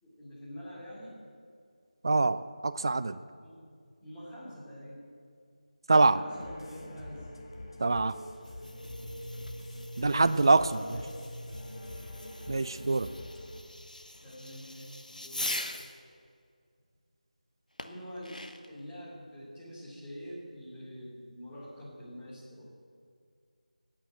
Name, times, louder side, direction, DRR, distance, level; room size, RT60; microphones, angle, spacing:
voice 1, 0.0-1.2 3.4-3.6 4.0-5.0 5.9-7.3 9.9-11.1 14.2-15.6 17.8-22.7, equal, 10° left, -9 dB, 2.9 m, -45 dB
voice 2, 2.0-3.2 5.9-6.2 7.8-8.2 10.0-10.7 12.5-13.1, right 3 dB, 35° right, 14 dB, 0.4 m, -24 dB
sound 1, 6.3-13.6, left 1 dB, 40° left, 1.9 m, -44 dB
Fireworks, 8.3-16.0 17.8-18.8, left 1 dB, 75° left, 1.3 m, -43 dB
16.5 x 9.7 x 7.6 m, 2.3 s
figure-of-eight pair, 165°, 4 cm